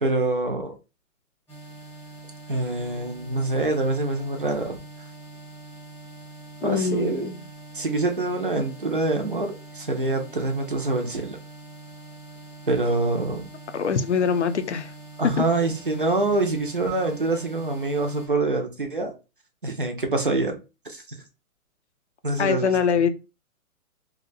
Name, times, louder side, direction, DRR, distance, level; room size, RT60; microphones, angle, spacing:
voice 1, 0.0-0.8 2.5-4.8 6.6-7.3 7.7-11.4 12.7-13.5 15.2-19.1 19.6-20.6 20.8-21.2 22.2-22.8, right 2 dB, 40° right, 0.5 m, -25 dB
sound 1, 1.5-18.3, right 2 dB, 5° left, 0.9 m, -44 dB
voice 2, 6.6-7.4 13.7-14.9 22.4-23.1, left 6 dB, 55° left, 0.5 m, -23 dB
2.7 x 2.2 x 3.9 m
hypercardioid pair, 180°, 43 cm